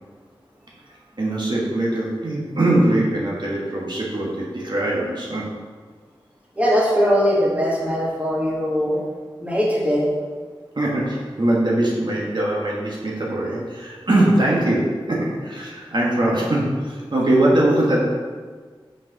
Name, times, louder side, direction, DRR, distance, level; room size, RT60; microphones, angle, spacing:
voice 1, 1.2-5.5 10.8-18.0, right 1 dB, 55° right, -4 dB, 1.7 m, -21 dB
voice 2, 6.6-9.0 9.4-10.1, equal, 15° right, -5 dB, 2.2 m, -20 dB
6.4 x 5.3 x 6.0 m, 1.5 s
wide cardioid pair, 55°, 9 cm